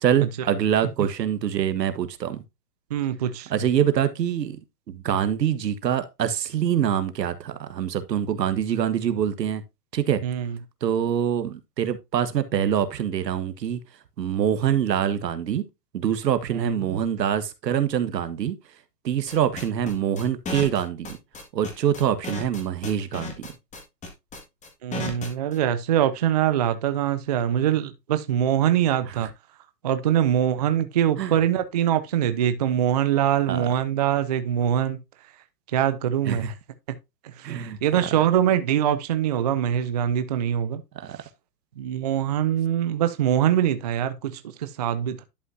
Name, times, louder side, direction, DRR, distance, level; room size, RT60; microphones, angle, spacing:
voice 1, 0.0-2.4 3.5-4.6 4.9-9.6 9.9-10.2 10.8-13.8 14.2-15.6 15.9-18.5 19.0-21.2 21.5-23.5 31.2-31.4 33.5-33.7 36.3-36.5 37.4-37.8 40.9-41.2, right 9 dB, 85° right, 1.4 m, -25 dB
voice 2, 2.9-3.5 10.2-10.6 16.5-17.0 24.8-29.3 29.8-35.0 35.7-36.5 37.4-40.8 41.8-45.2, right 10 dB, 30° right, 0.4 m, -23 dB
sound 1, 19.3-25.6, left 3 dB, 15° left, 1.7 m, -34 dB
11.0 x 5.5 x 2.6 m
hypercardioid pair, 145°, 49 cm